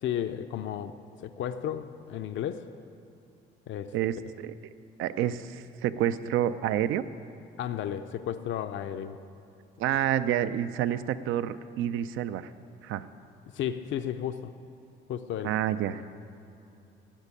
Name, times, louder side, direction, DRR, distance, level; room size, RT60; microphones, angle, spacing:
voice 1, 0.0-2.7 3.7-3.9 7.6-9.2 13.5-14.5 15.1-15.5, left 10 dB, 75° left, 9 dB, 0.6 m, -33 dB
voice 2, 3.9-4.5 5.0-7.0 9.8-12.5 12.8-13.1 15.4-16.1, right 11 dB, 90° right, 13 dB, 0.5 m, -28 dB
12.0 x 7.4 x 9.8 m, 2.7 s
cardioid pair, 90°, 20 cm